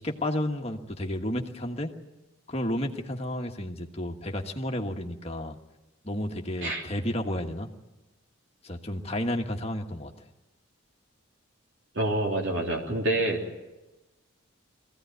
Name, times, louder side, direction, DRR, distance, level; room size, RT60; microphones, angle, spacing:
voice 1, 0.0-1.9 2.5-5.6 6.0-7.7 8.6-10.1, left 1 dB, 30° left, 3 dB, 1.4 m, -31 dB
voice 2, 12.0-13.4, right 1 dB, 60° right, -1 dB, 3.4 m, -27 dB
23.5 x 16.0 x 9.3 m, 1.0 s
head